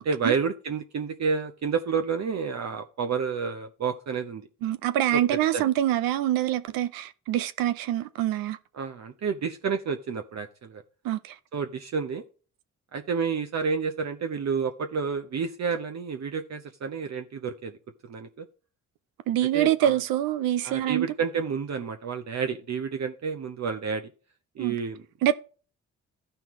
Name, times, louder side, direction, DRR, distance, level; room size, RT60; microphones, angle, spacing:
voice 1, 0.0-4.4 5.5-5.6 8.7-10.8 11.5-12.2 12.9-17.8 18.0-18.4 19.5-20.0 20.6-24.1 24.6-25.0, right 5 dB, 50° right, 0.9 m, -30 dB
voice 2, 4.6-8.6 11.0-11.3 19.3-21.1 24.6-24.8 25.2-25.3, right 12 dB, 75° right, 0.6 m, -25 dB
13.5 x 5.7 x 3.1 m
hypercardioid pair, 50°, 35 cm